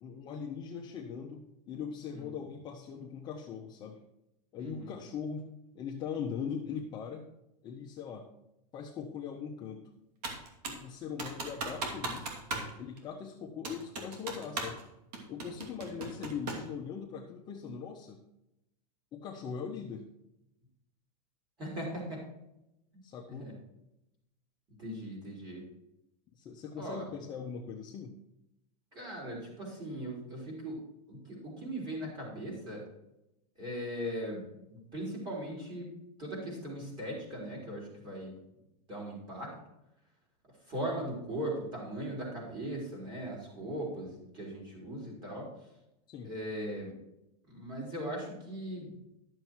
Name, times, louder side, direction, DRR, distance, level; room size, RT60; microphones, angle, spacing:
voice 1, 0.0-4.0 4.5-5.5 5.7-7.3 7.6-8.3 8.7-9.8 10.7-12.3 12.8-14.8 15.3-18.2 19.1-20.0 23.0-23.5 26.4-28.1 46.1-46.3, left 6 dB, 20° left, 0 dB, 0.8 m, -40 dB
voice 2, 4.6-4.9 21.6-22.2 23.3-23.5 24.8-25.6 26.8-27.1 28.9-30.8 31.1-32.8 33.6-34.4 34.7-35.9 36.2-38.3 38.9-39.5 40.7-45.5 46.2-46.9 47.5-48.9, right 1 dB, 20° right, -2 dB, 4.0 m, -39 dB
Computer keyboard, 10.2-10.9 11.2-12.7 13.0-13.1 13.6-14.8 15.1-16.7, right 3 dB, 70° right, 2.7 m, -37 dB
12.0 x 6.9 x 4.6 m, 0.88 s
supercardioid pair, 165°, 21 cm